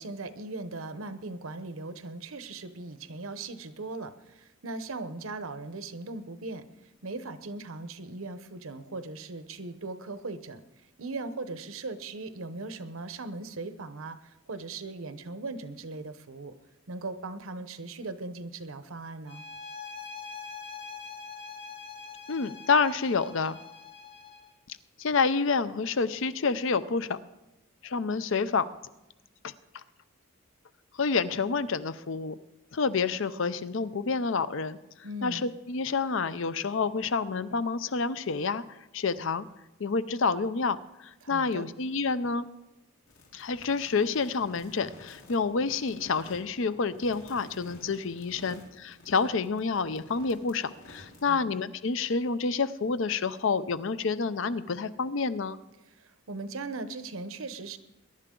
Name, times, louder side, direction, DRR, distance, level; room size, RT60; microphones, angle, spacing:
voice 1, 0.0-6.6 7.0-10.6 11.0-16.5 16.9-19.4 35.0-35.4 41.2-41.7 51.3-51.5 55.9-57.8, right 3 dB, 75° right, 11 dB, 0.9 m, -39 dB
sound 1, 19.3-24.6, left 5 dB, 25° left, 1.0 m, -43 dB
voice 2, 22.3-23.6 24.7-27.2 27.8-28.7 29.4-29.5 31.0-32.4 32.7-34.8 35.2-39.5 39.8-42.5 43.3-55.6, left 4 dB, 60° left, 14 dB, 0.6 m, -28 dB
sound 2, 43.1-51.3, left 1 dB, 75° left, 3.4 m, -52 dB
21.5 x 11.0 x 3.8 m, 0.96 s
head